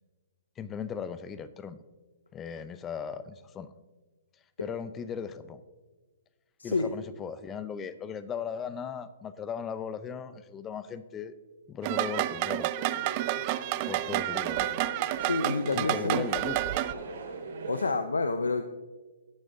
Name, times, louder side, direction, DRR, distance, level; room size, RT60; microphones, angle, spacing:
voice 1, 0.6-1.8 2.3-3.7 4.6-5.6 6.6-11.3 11.7-13.1 13.9-14.8 15.7-16.8, left 7 dB, 20° left, 13 dB, 0.5 m, -38 dB
sound 1, 11.8-16.9, right 15 dB, 40° right, 0.4 m, -30 dB
sound 2, 12.8-17.9, right 3 dB, 65° right, 2.9 m, -41 dB
voice 2, 15.2-16.3 17.7-18.6, left 3 dB, 90° left, 8 dB, 0.5 m, -28 dB
17.5 x 6.4 x 2.6 m, 1.3 s
hypercardioid pair, 130°, 0 cm